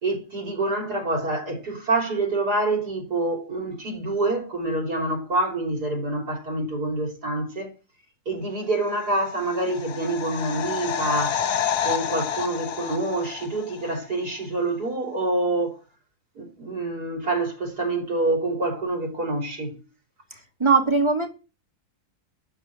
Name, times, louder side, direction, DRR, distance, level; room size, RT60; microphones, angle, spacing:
voice 1, 0.0-7.7 8.3-11.4 11.8-15.8 16.4-19.8, right 2 dB, 85° right, 3.8 m, -26 dB
sound 1, 9.1-14.0 14.2-14.3, left 8 dB, 85° left, 1.5 m, -29 dB
voice 2, 20.6-21.3, right 4 dB, 15° right, 2.4 m, -19 dB
12.5 x 5.1 x 9.0 m
omnidirectional pair, 1.6 m